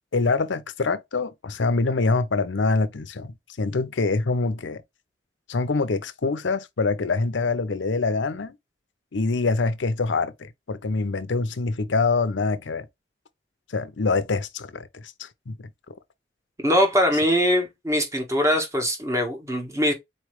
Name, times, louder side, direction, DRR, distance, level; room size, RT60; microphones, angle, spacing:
voice 1, 0.1-4.8 5.5-8.6 9.1-12.9 13.7-15.7, left 3 dB, 85° left, 0.7 m, -25 dB
voice 2, 16.6-19.9, equal, 15° right, 1.4 m, -22 dB
4.3 x 3.1 x 3.1 m
head